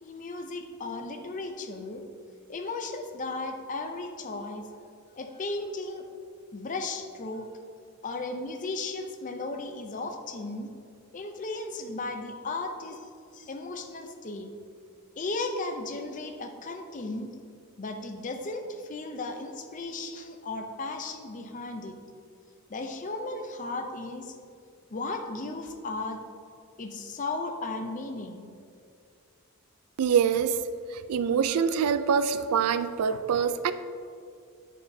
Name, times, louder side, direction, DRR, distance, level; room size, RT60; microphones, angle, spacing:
voice 1, 0.0-2.0 2.5-4.7 5.2-6.1 6.5-7.5 8.0-10.7 11.1-14.5 15.2-17.4 17.8-22.0 22.7-24.4 24.9-26.2 26.8-28.5, left 3 dB, 35° left, 6 dB, 0.5 m, -35 dB
voice 2, 30.0-30.6 30.9-33.7, right 7 dB, 85° right, 12 dB, 0.4 m, -25 dB
9.1 x 5.8 x 2.7 m, 2.3 s
head